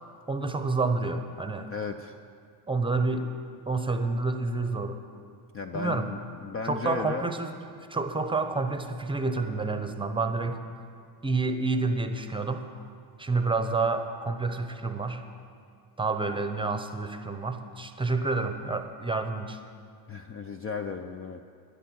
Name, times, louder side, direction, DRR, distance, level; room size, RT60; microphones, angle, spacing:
voice 1, 0.3-1.7 2.7-3.3 3.7-5.0 5.7-6.1 6.6-7.6 7.9-10.6 11.2-12.7 13.2-15.2 16.0-19.6, right 3 dB, 10° right, 7 dB, 0.8 m, -29 dB
voice 2, 1.7-2.2 5.5-7.3 20.1-21.4, left 5 dB, 30° left, 6 dB, 0.5 m, -35 dB
12.0 x 10.5 x 6.2 m, 2.3 s
supercardioid pair, 105°, 50 cm